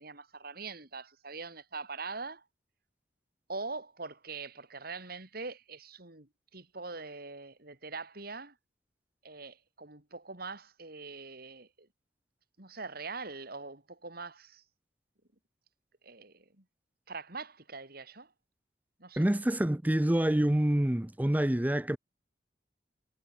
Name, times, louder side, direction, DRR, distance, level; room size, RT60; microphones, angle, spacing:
voice 1, 0.0-2.4 3.5-8.6 9.2-11.9 12.6-14.6 16.0-16.6 17.1-18.3 19.0-19.2, right 4 dB, 55° right, 4.7 m, -43 dB
voice 2, 19.2-22.0, right 1 dB, 10° right, 0.5 m, -27 dB
head